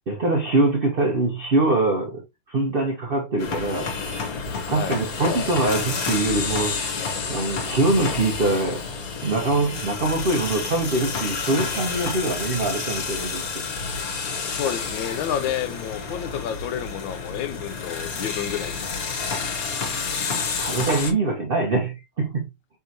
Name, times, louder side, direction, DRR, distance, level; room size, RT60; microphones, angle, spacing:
voice 1, 0.1-3.9 4.7-6.8 7.3-8.8 9.2-13.7 14.3-14.4 20.2-22.4, right 2 dB, 75° right, 0.5 m, -23 dB
sound 1, 3.4-21.1, left 5 dB, 55° left, 1.3 m, -29 dB
voice 2, 4.7-5.0 14.5-19.0, left 9 dB, 75° left, 1.3 m, -30 dB
4.6 x 3.5 x 2.6 m
omnidirectional pair, 2.2 m